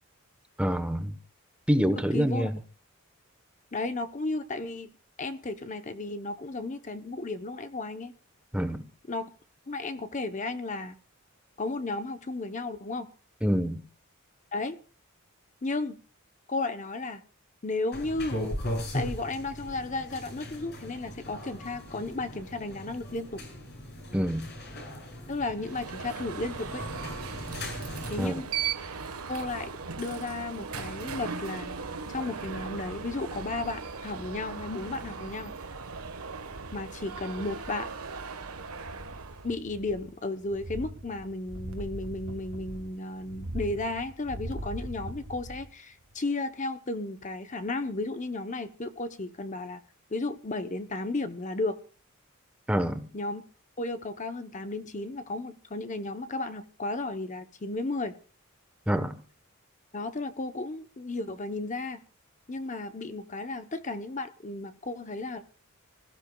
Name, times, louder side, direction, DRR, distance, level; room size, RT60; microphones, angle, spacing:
voice 1, 0.6-1.2 1.7-2.5 8.5-8.9 13.4-13.8 24.1-24.5 28.2-28.3 52.7-53.1 58.9-59.2, equal, 5° right, 1.0 m, -26 dB
voice 2, 2.1-2.5 3.7-4.9 5.2-8.1 9.1-9.3 9.7-11.0 11.6-13.1 14.5-14.8 15.6-16.0 16.5-17.2 17.6-18.4 18.9-23.4 25.3-26.8 28.1-28.5 29.3-29.7 30.0-31.7 32.1-35.5 36.7-37.9 39.4-49.8 50.1-51.8 53.1-53.4 53.8-58.1 59.9-62.0 62.5-65.4, left 2 dB, 35° left, 0.8 m, -34 dB
sound 1, 17.9-28.3, left 1 dB, 50° left, 6.9 m, -38 dB
Alarm, 25.6-39.5, right 5 dB, 85° right, 1.3 m, -38 dB
sound 2, 38.7-40.2 40.4-45.7 46.1-46.2, right 1 dB, 65° right, 1.7 m, -41 dB
26.0 x 15.0 x 2.3 m
head